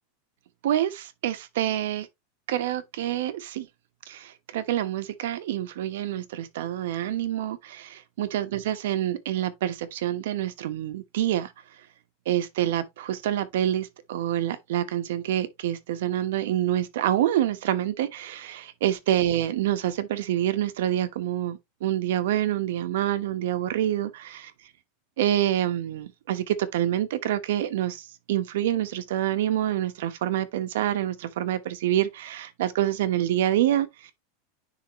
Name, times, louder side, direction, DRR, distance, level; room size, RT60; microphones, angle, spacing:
voice 1, 0.6-2.1 2.5-3.7 4.1-11.5 12.3-24.5 25.2-34.1, right 12 dB, 65° right, 1.1 m, -27 dB
10.0 x 3.6 x 3.0 m
supercardioid pair, 175°, 0 cm